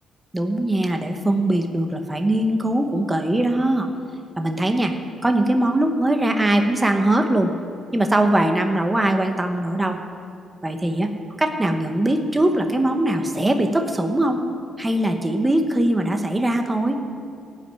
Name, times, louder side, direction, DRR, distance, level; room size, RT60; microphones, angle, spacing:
voice 1, 0.3-3.9 4.4-4.9 5.2-7.5 7.9-10.0 10.6-11.1 11.4-14.4 14.8-17.0, right 1 dB, 15° right, 5 dB, 1.1 m, -21 dB
15.0 x 6.3 x 9.1 m, 2.6 s
cardioid pair, 90°, 0 cm